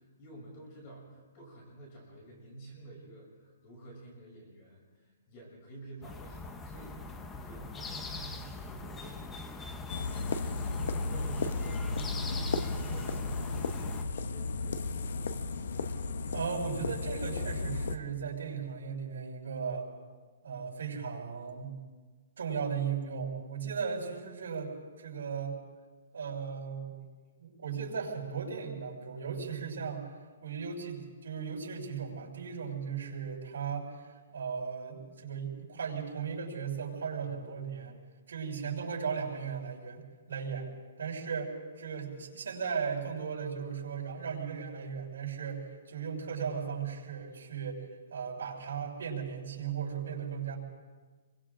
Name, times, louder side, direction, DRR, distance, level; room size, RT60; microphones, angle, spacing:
voice 1, 0.0-12.3 12.7-15.2, right 1 dB, 25° left, -2 dB, 7.3 m, -51 dB
sound 1, 6.0-14.0, left 3 dB, 10° left, 0.8 m, -42 dB
sound 2, 9.9-18.0, left 3 dB, 60° left, 1.1 m, -34 dB
voice 2, 16.3-19.9 20.4-21.8 22.4-25.6 26.1-27.0 27.4-30.0 30.4-38.0 38.3-40.7 41.0-47.8 48.1-50.6, right 6 dB, 80° right, -1 dB, 6.4 m, -36 dB
28.5 x 23.5 x 3.9 m, 1.4 s
hypercardioid pair, 175°, 0 cm